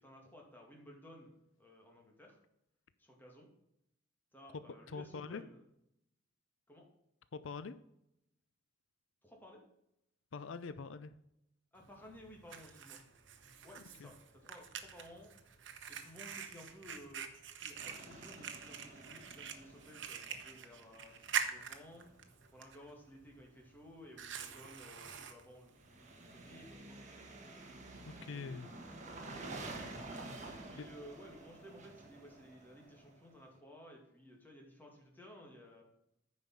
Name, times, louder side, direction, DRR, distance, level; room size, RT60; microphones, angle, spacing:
voice 1, 0.0-2.4 3.0-3.5 4.3-5.6 6.7-6.9 9.2-9.6 11.7-13.0 13.6-15.3 15.9-17.3 17.6-21.1 21.4-22.1 22.5-27.0 28.2-28.7 30.4-35.8, equal, 10° left, 0 dB, 2.3 m, -56 dB
voice 2, 4.9-5.4 7.3-7.8 10.3-11.1 14.0-14.1 28.0-28.7 30.4-30.9, left 4 dB, 90° left, 14 dB, 0.5 m, -44 dB
Fire, 11.8-26.7, right 7 dB, 70° right, 1.0 m, -46 dB
sound 1, 17.8-21.6 25.8-33.4, right 2 dB, 40° right, 1.6 m, -50 dB
9.3 x 5.4 x 5.6 m, 0.79 s
head